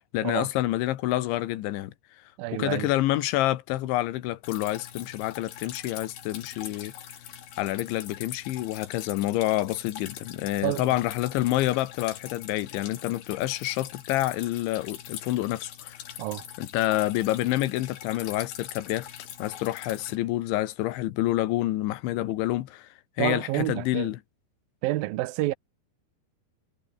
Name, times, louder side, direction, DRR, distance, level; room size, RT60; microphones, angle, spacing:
voice 1, 0.1-1.9 2.5-6.9 7.6-16.0 16.6-19.1 19.4-22.9 23.2-24.2, left 15 dB, 85° left, 3.7 m, -28 dB
voice 2, 2.4-2.9 10.6-10.9 16.2-16.4 23.2-24.1 24.8-25.5, right 18 dB, 75° right, 2.2 m, -29 dB
Drip, 4.4-20.2, left 10 dB, 65° left, 4.3 m, -43 dB
omnidirectional pair, 5.2 m